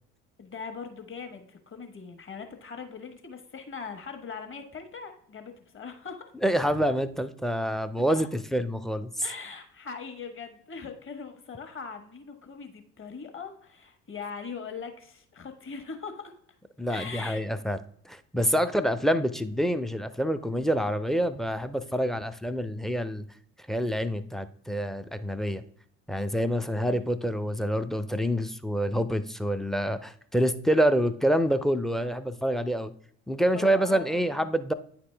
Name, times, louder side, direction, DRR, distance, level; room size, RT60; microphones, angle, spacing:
voice 1, 0.4-6.3 8.1-8.3 9.2-16.3 16.9-17.4 26.9-27.0 33.5-34.5, left 5 dB, 35° left, 6 dB, 1.3 m, -41 dB
voice 2, 6.4-9.2 16.8-17.8 18.1-23.2 23.7-25.6 26.1-32.9 33.3-34.7, equal, ahead, 13 dB, 0.4 m, -27 dB
9.3 x 4.2 x 3.3 m, 0.63 s
hypercardioid pair, 60°, 35 cm